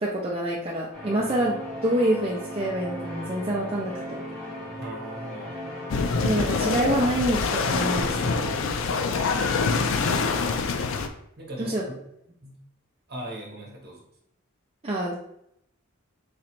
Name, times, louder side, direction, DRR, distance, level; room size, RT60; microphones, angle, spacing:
voice 1, 0.0-4.2 6.2-8.5 11.6-11.8 14.8-15.1, right 1 dB, 25° right, -4 dB, 0.5 m, -27 dB
sound 1, 0.9-8.6, left 1 dB, 5° left, 1.3 m, -37 dB
voice 2, 4.8-5.6 9.1-9.6 11.4-12.0 12.4-12.6 13.1-14.0, right 1 dB, 50° right, -2 dB, 1.1 m, -39 dB
sound 2, 5.9-11.1, left 4 dB, 70° left, 0.4 m, -25 dB
3.9 x 3.2 x 2.9 m, 0.75 s
head